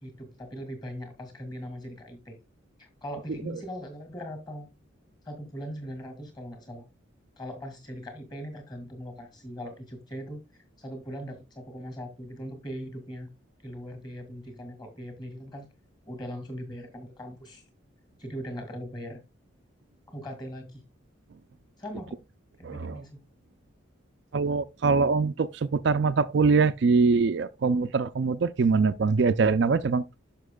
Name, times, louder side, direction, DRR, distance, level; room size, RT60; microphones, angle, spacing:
voice 1, 0.0-2.4 2.8-4.7 5.3-6.9 7.4-13.3 13.6-15.7 16.1-17.7 18.2-19.2 20.1-20.8 21.8-22.2 22.6-23.2, equal, 20° left, 2.1 m, -40 dB
voice 2, 22.6-23.0 24.3-30.0, right 4 dB, 55° right, 0.4 m, -23 dB
11.5 x 5.9 x 2.3 m
head